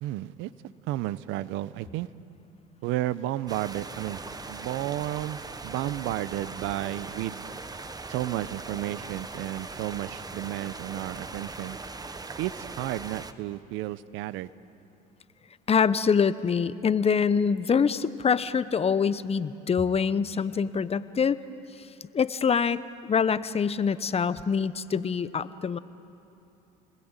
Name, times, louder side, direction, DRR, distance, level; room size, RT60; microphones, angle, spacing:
voice 1, 0.0-0.5 0.9-2.1 2.8-4.2 4.5-7.4 8.1-11.8 12.4-14.5, right 15 dB, 70° right, 17 dB, 0.9 m, -32 dB
sound 1, 3.5-13.3, right 3 dB, 20° right, 1.3 m, -40 dB
voice 2, 15.7-21.4 22.1-25.8, left 6 dB, 30° left, 15 dB, 0.9 m, -25 dB
30.0 x 21.0 x 9.1 m, 2.7 s
supercardioid pair, 85°, 21 cm